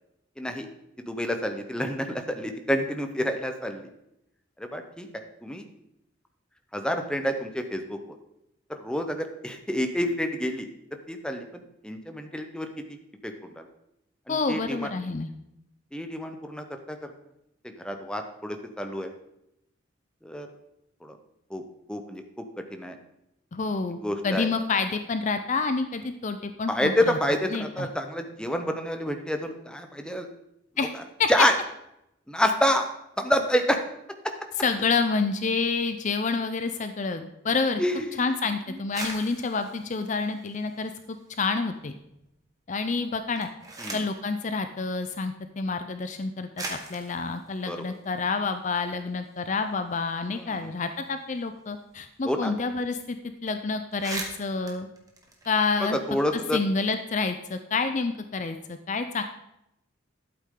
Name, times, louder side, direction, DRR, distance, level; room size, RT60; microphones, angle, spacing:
voice 1, 0.4-0.7 1.0-3.9 4.6-5.7 6.7-8.0 8.7-10.7 11.1-13.0 13.2-13.7 14.3-14.9 15.9-17.0 17.6-19.1 20.2-20.5 21.0-21.2 21.5-21.6 21.9-23.0 24.0-24.5 26.7-30.3 31.3-31.5 32.3-32.8 33.2-33.8 37.8-38.3 38.7-38.8 43.8-44.1 47.7-47.8 50.3-50.7 52.2-52.5 55.9-56.6, equal, 5° left, 5 dB, 0.8 m, -28 dB
voice 2, 14.3-15.3 23.5-24.0 24.2-27.2 27.5-27.9 30.8-30.9 31.2-31.3 34.6-37.8 38.2-41.9 42.7-43.5 43.9-53.2 53.4-54.9 55.5-56.0 56.5-59.2, left 4 dB, 35° left, 8 dB, 0.5 m, -28 dB
sound 1, 38.8-41.3 41.7-42.4 43.2-44.3 45.3-45.4 46.1-46.2 46.5-48.9 49.2-49.3 49.6-52.2 52.5-52.6 52.9-53.1 53.5-53.6 53.8-56.0, right 2 dB, 20° right, 1.5 m, -41 dB
12.0 x 8.4 x 3.8 m, 0.83 s
head